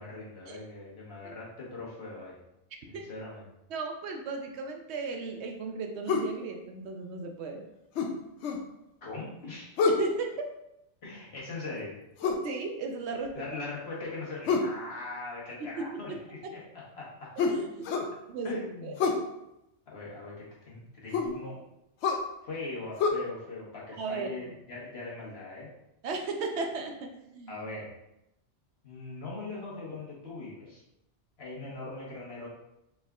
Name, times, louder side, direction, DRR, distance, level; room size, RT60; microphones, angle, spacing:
voice 1, 0.0-2.4 2.9-3.4 9.0-9.7 11.0-12.0 13.3-17.4 18.4-19.0 19.9-21.6 22.4-25.7 27.5-27.9 28.8-30.8 31.4-32.5, left 3 dB, 60° left, -5 dB, 1.4 m, -40 dB
voice 2, 3.7-7.6 9.8-10.4 12.4-13.3 15.6-16.5 17.5-18.0 18.3-18.9 24.0-24.3 26.0-27.6, right 4 dB, 70° right, 3 dB, 0.8 m, -36 dB
sound 1, 6.1-6.3 8.0-8.7 9.8-10.1 12.2-12.5 14.5-14.8 17.4-18.1 19.0-19.3 21.1-21.4 22.0-22.3 23.0-23.1, left 4 dB, 75° left, 0.9 m, -27 dB
4.1 x 3.5 x 2.4 m, 0.84 s
omnidirectional pair, 1.2 m